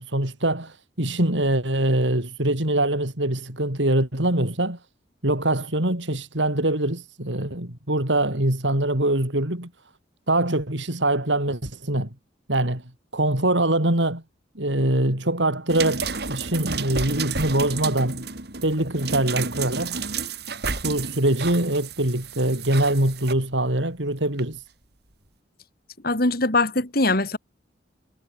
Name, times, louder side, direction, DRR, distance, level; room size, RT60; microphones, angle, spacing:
voice 1, 0.0-4.8 5.2-9.7 10.3-12.1 12.5-14.2 14.5-18.2 18.6-20.0 20.8-24.6, right 1 dB, 85° right, 5.0 m, -23 dB
sound 1, 15.7-23.3 24.4-24.5, right 4 dB, 60° right, 4.4 m, -31 dB
voice 2, 26.0-27.4, left 2 dB, 55° left, 3.2 m, -22 dB
head